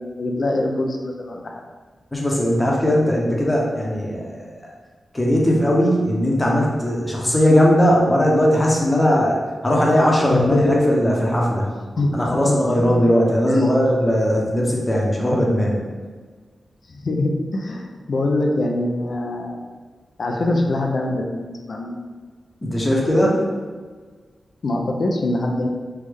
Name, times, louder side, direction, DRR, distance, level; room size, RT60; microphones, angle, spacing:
voice 1, 0.0-1.6 10.3-10.9 12.0-12.9 13.5-13.8 16.9-19.6 20.2-22.0 24.6-25.7, left 2 dB, 65° left, 1 dB, 0.4 m, -23 dB
voice 2, 2.1-4.6 5.1-11.7 12.1-15.7 22.6-23.4, equal, 20° left, -3 dB, 0.8 m, -18 dB
3.4 x 2.0 x 3.5 m, 1.5 s
cardioid pair, 65°, 0 cm